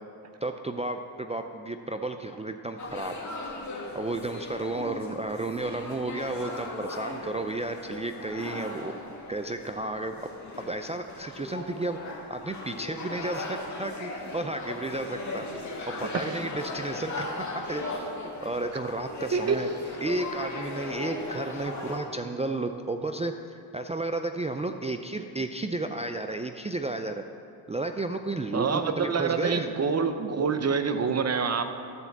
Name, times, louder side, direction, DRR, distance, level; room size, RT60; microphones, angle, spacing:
voice 1, 0.4-3.1 3.9-8.9 9.3-10.3 10.7-15.6 16.0-19.7 20.0-27.2 27.7-28.7 29.0-29.7 30.5-30.6, right 2 dB, 15° right, 5 dB, 0.4 m, -33 dB
sound 1, 2.8-22.0, left 2 dB, 35° left, 1.9 m, -38 dB
voice 2, 16.1-16.5 19.3-19.6 28.5-31.6, right 5 dB, 35° right, 9 dB, 0.8 m, -26 dB
12.5 x 4.4 x 7.1 m, 2.5 s
cardioid pair, 70°, 48 cm